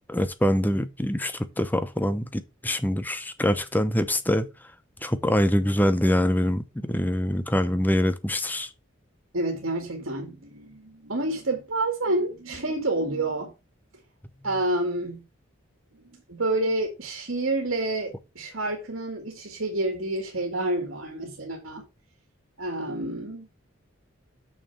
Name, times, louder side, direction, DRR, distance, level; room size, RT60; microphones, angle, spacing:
voice 1, 0.1-4.5 5.0-8.7, equal, 10° left, 0.7 m, -24 dB
voice 2, 9.3-13.5 14.4-15.2 15.9-16.0 16.3-21.8 22.6-23.5, right 2 dB, 70° right, 2.0 m, -28 dB
6.6 x 6.3 x 5.6 m
head